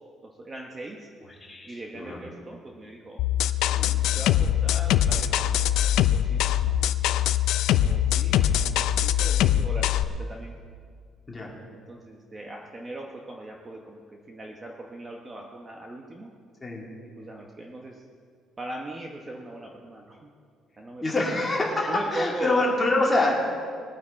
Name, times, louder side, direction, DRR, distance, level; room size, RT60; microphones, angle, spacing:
voice 1, 0.2-1.1 1.7-3.2 4.1-6.9 7.7-10.5 11.7-16.3 17.0-18.0 18.6-20.3 20.8-21.4 21.9-22.6, right 2 dB, 20° right, 1 dB, 0.9 m, -39 dB
voice 2, 1.5-2.2 3.7-4.0 11.3-11.5 16.6-16.8 21.0-23.4, left 2 dB, 15° left, -4 dB, 2.6 m, -25 dB
sound 1, 3.2-10.0, left 11 dB, 75° left, 0.4 m, -23 dB
20.5 x 9.1 x 4.3 m, 2.1 s
cardioid pair, 160°, 0 cm